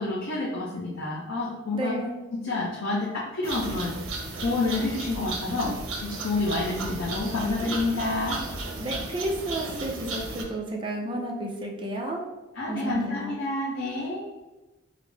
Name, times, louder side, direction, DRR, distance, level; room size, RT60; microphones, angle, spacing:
voice 1, 0.0-2.0 2.3-3.9 4.4-5.7 6.0-8.4 12.5-14.2, left 2 dB, 70° left, -7 dB, 0.7 m, -28 dB
voice 2, 1.7-2.1 8.8-12.2 12.7-13.3, right 1 dB, 25° right, 0 dB, 0.5 m, -31 dB
sound 1, 3.4-10.4, right 3 dB, 90° right, 0.6 m, -34 dB
3.8 x 2.0 x 3.3 m, 1.1 s
head